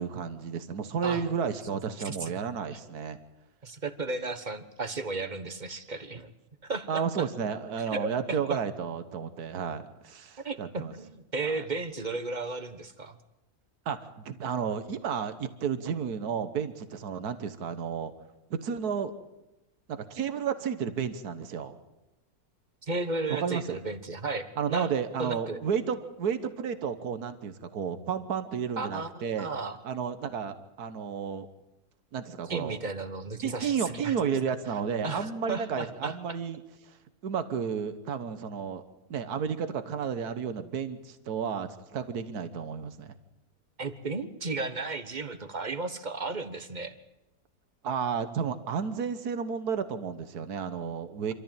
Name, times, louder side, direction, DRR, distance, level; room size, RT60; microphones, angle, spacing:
voice 1, 0.0-3.2 6.9-10.9 11.4-11.5 13.8-18.1 18.5-19.1 19.9-21.7 23.3-23.8 24.6-29.5 29.8-31.5 32.1-32.8 33.4-37.0 37.2-38.8 39.1-43.1 47.8-51.3, right 7 dB, 85° right, 10 dB, 1.7 m, -32 dB
voice 2, 2.0-2.4 2.7-2.8 3.6-6.3 6.6-7.0 7.9-8.6 10.4-13.2 22.8-24.9 25.2-25.6 28.8-29.1 29.4-29.8 32.5-34.3 35.0-36.4 43.8-47.0, right 3 dB, 30° right, 10 dB, 1.3 m, -34 dB
26.0 x 14.0 x 9.0 m, 0.95 s
omnidirectional pair, 1.6 m